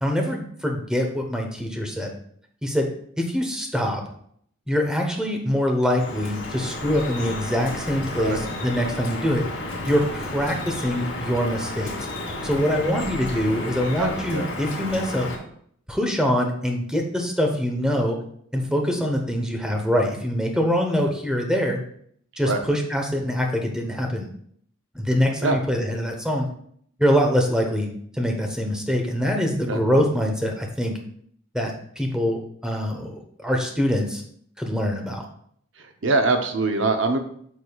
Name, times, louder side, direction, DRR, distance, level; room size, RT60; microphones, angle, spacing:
voice 1, 0.0-2.1 2.6-2.9 3.2-4.0 4.7-9.4 9.8-11.9 12.4-15.3 15.9-18.2 18.5-21.8 22.4-24.3 24.9-26.5 27.0-27.9 28.1-30.9 31.5-34.2 34.6-35.2, equal, 5° right, 2 dB, 1.0 m, -24 dB
Drip, 5.9-15.4, left 2 dB, 75° left, 2.0 m, -32 dB
voice 2, 14.0-14.5 22.4-22.6 25.4-25.6 29.7-29.8 36.0-37.2, right 3 dB, 70° right, 5 dB, 0.8 m, -23 dB
8.5 x 6.4 x 2.4 m, 0.64 s
head